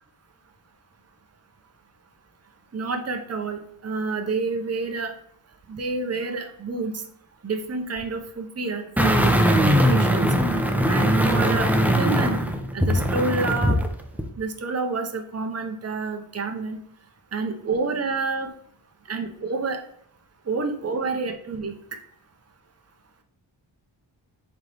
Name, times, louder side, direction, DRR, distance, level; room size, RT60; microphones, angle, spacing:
voice 1, 2.7-5.1 5.7-7.0 7.4-10.3 10.9-12.4 12.7-13.8 14.4-16.8 17.3-18.5 19.1-19.8 20.5-21.7, right 4 dB, 35° right, 5 dB, 0.9 m, -29 dB
sound 1, 9.0-13.9 14.2-14.3, equal, 5° right, 0.8 m, -20 dB
7.9 x 4.0 x 3.4 m, 0.69 s
wide cardioid pair, 85°, 45 cm